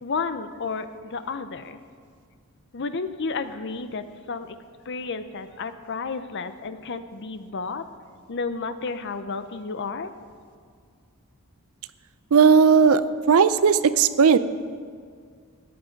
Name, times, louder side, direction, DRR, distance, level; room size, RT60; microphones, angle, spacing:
voice 1, 0.0-1.8 2.7-4.6 4.9-7.8 8.3-10.1, left 4 dB, 55° left, 11 dB, 0.7 m, -32 dB
voice 2, 12.3-13.0 13.3-14.4, right 6 dB, 75° right, 14 dB, 0.5 m, -16 dB
14.0 x 9.7 x 5.2 m, 2.1 s
head